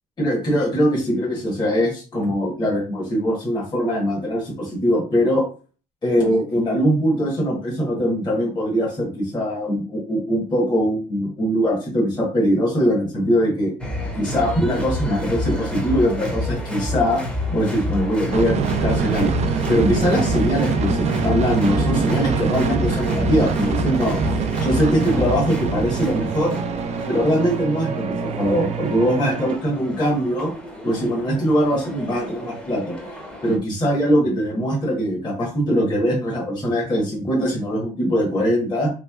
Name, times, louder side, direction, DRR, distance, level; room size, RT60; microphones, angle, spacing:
voice 1, 0.2-5.4 6.0-13.7 14.2-17.2 17.5-19.3 19.7-24.2 24.6-26.6 27.1-30.5 30.8-33.0 33.4-38.9, equal, 25° left, -3 dB, 1.2 m, -21 dB
sound 1, 13.8-33.6, left 1 dB, 5° left, 0.9 m, -29 dB
sound 2, 18.3-29.6, right 6 dB, 40° right, 0.4 m, -25 dB
3.4 x 3.1 x 2.3 m, 0.37 s
cardioid pair, 110°, 17 cm